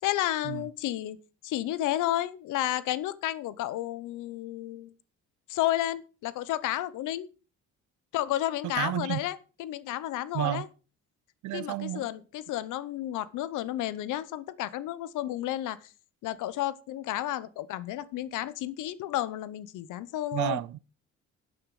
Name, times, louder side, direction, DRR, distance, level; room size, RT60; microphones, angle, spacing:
voice 1, 0.0-1.2 1.4-4.9 5.5-7.3 8.1-10.7 11.5-15.8 16.2-20.6, left 14 dB, 90° left, 0.8 m, -32 dB
voice 2, 8.6-9.2 10.3-10.7 11.4-12.1 20.3-20.8, right 16 dB, 75° right, 0.6 m, -31 dB
9.9 x 8.7 x 4.8 m
cardioid pair, 90°, 30 cm